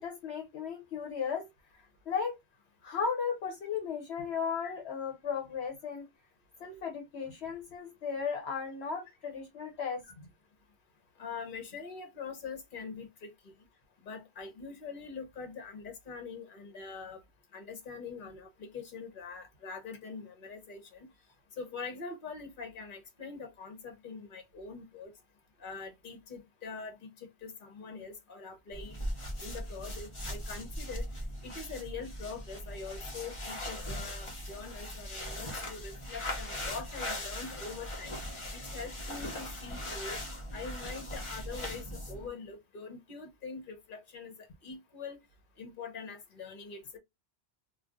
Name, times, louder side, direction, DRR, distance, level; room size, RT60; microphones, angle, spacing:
voice 1, 0.0-1.5 2.1-2.4 2.8-6.0 6.6-10.0, left 6 dB, 70° left, 1.0 m, -35 dB
voice 2, 11.2-13.5 14.0-17.2 17.5-21.1 21.6-25.1 25.6-28.9 29.4-31.1 31.4-38.2 38.5-40.2 40.5-44.3 44.6-45.2 45.6-47.0, left 5 dB, 50° left, 1.1 m, -43 dB
sound 1, 28.7-42.3, left 1 dB, 30° left, 0.9 m, -39 dB
2.5 x 2.5 x 3.5 m
omnidirectional pair, 1.2 m